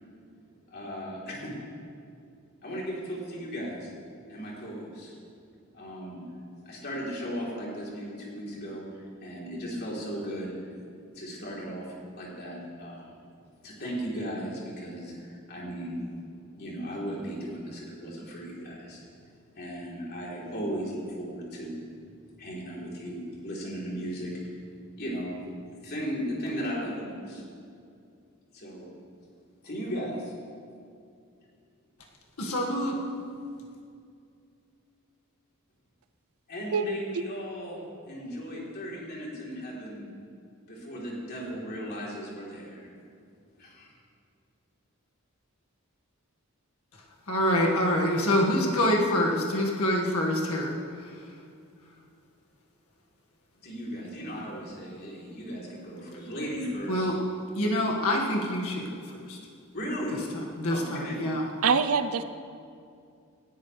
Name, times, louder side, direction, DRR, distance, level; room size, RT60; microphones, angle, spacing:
voice 1, 0.7-1.5 2.6-3.9 4.3-5.2 5.7-6.2 6.6-10.7 11.1-13.2 13.6-16.1 16.6-19.0 19.5-21.8 22.4-25.3 25.6-27.4 28.5-28.9 29.6-30.3 36.5-40.1 40.7-42.9 43.6-43.9 53.6-57.1 59.7-60.2 60.7-61.3, equal, 50° left, 3.6 m, -36 dB
voice 2, 32.4-33.0 47.3-50.8 51.1-51.2 56.9-57.2 57.5-59.4 60.3-61.5, left 1 dB, 75° left, 1.9 m, -26 dB
voice 3, 36.7-37.2 61.6-62.2, right 5 dB, 70° right, 0.6 m, -25 dB
19.5 x 13.0 x 3.4 m
head